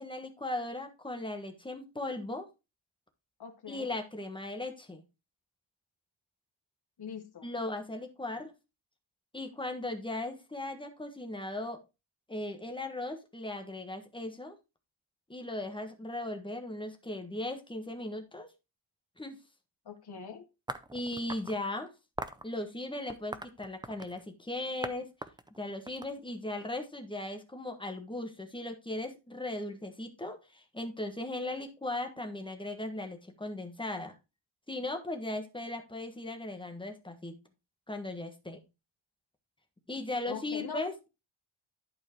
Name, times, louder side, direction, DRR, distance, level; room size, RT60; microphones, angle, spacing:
voice 1, 0.0-2.5 3.7-5.0 7.4-8.5 9.3-11.8 12.3-14.6 15.3-18.5 19.2-19.4 20.9-21.9 22.4-25.1 25.6-34.2 34.7-37.3 37.9-38.6 39.9-41.1, left 2 dB, 10° left, 1.4 m, -37 dB
voice 2, 3.4-4.0 7.0-7.5 19.8-20.5 40.2-40.8, left 6 dB, 50° left, 1.4 m, -42 dB
sound 1, 20.7-21.6 22.2-22.4 23.1-24.2 24.8-24.9 25.2-26.6, right 2 dB, 10° right, 0.5 m, -40 dB
11.5 x 4.7 x 4.4 m
wide cardioid pair, 160°, 50 cm